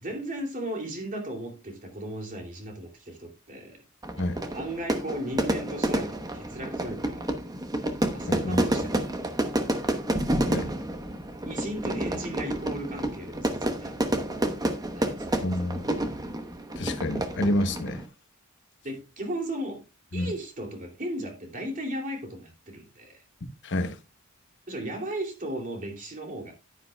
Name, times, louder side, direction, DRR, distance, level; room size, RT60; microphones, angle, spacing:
voice 1, 0.0-3.8 4.5-7.3 8.1-9.6 11.5-14.4 14.9-15.4 18.8-19.8 20.1-23.2 24.7-26.5, right 1 dB, 40° right, 2.7 m, -36 dB
Fire / Fireworks, 4.0-18.1, right 1 dB, 20° right, 0.9 m, -29 dB
voice 2, 8.2-8.6 10.5-10.7 15.4-15.8 16.8-18.0 20.1-20.3 23.6-24.0, left 1 dB, 60° left, 1.0 m, -28 dB
10.5 x 9.6 x 2.3 m
head